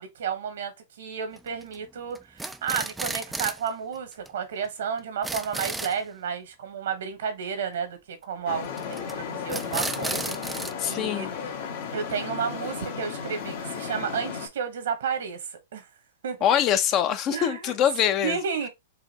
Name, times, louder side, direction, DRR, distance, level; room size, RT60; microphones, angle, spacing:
voice 1, 0.0-10.4 10.9-11.3 11.9-15.9 16.2-16.4 17.3-17.7 18.2-18.7, right 6 dB, 75° right, 1.4 m, -32 dB
sound 1, 1.4-1.8 2.1-3.7 4.0-4.1 4.3-4.4 4.6-4.7 5.0-6.0 8.8-9.1 9.5-10.7, right 2 dB, 5° right, 0.4 m, -33 dB
Traffic noise roadway noise, 8.5-14.5, left 6 dB, 65° left, 1.5 m, -34 dB
voice 2, 10.8-11.3 16.4-18.4, left 10 dB, 35° left, 0.7 m, -24 dB
4.8 x 2.7 x 3.0 m
hypercardioid pair, 130°, 0 cm